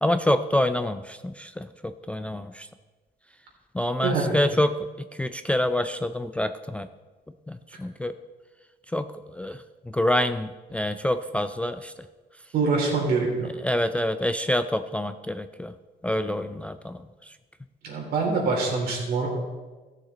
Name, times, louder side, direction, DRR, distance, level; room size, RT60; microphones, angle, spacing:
voice 1, 0.0-2.7 3.7-4.7 5.2-6.9 7.5-8.1 8.9-9.1 9.3-9.6 9.9-11.9 13.6-15.7 16.0-17.0, left 1 dB, 5° left, 10 dB, 0.3 m, -26 dB
voice 2, 4.0-4.4 12.5-13.5 17.8-19.3, right 4 dB, 70° right, -1 dB, 3.2 m, -24 dB
14.5 x 6.6 x 4.1 m, 1.3 s
cardioid pair, 110°, 17 cm